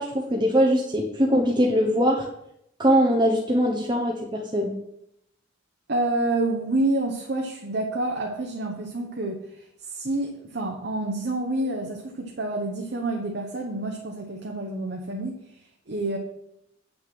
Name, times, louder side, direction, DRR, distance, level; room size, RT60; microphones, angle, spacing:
voice 1, 0.0-2.3 2.8-4.7, equal, 20° right, 0 dB, 0.9 m, -22 dB
voice 2, 5.9-16.2, right 2 dB, 55° right, 1 dB, 1.0 m, -28 dB
8.1 x 6.2 x 6.0 m, 0.78 s
head